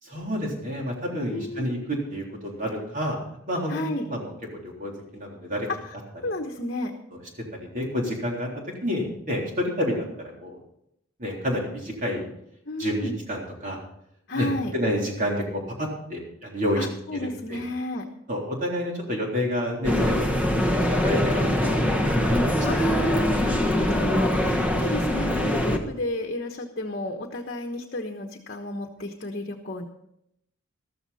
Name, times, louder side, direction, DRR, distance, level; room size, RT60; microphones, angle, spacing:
voice 1, 0.0-3.2 3.5-5.7 7.6-10.6 11.2-12.3 12.8-13.8 14.4-16.9 17.5-17.6 18.3-20.3 20.9-21.8 22.0-22.4 22.7-22.9, equal, 40° right, -1 dB, 3.7 m, -29 dB
voice 2, 1.3-1.7 3.7-4.1 5.7-5.9 6.2-7.0 12.6-13.2 14.3-14.8 16.8-18.1 22.6-29.8, left 1 dB, 50° left, 3 dB, 1.2 m, -32 dB
sound 1, 19.8-25.8, left 1 dB, 5° right, 1.2 m, -23 dB
14.0 x 13.5 x 4.2 m, 0.77 s
head